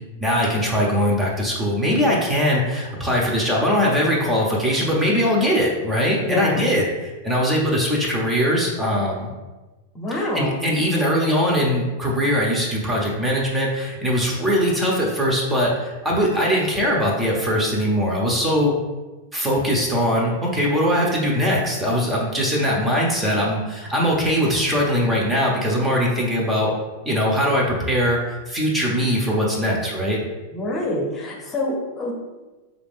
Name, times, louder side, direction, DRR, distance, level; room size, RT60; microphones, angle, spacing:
voice 1, 0.2-9.3 10.1-18.7 19.3-26.7 27.1-30.2, equal, 15° right, -3 dB, 0.8 m, -21 dB
voice 2, 6.2-6.6 9.9-10.5 30.5-32.1, left 2 dB, 20° left, -1 dB, 0.9 m, -26 dB
4.6 x 2.5 x 3.5 m, 1.2 s
supercardioid pair, 130°, 0 cm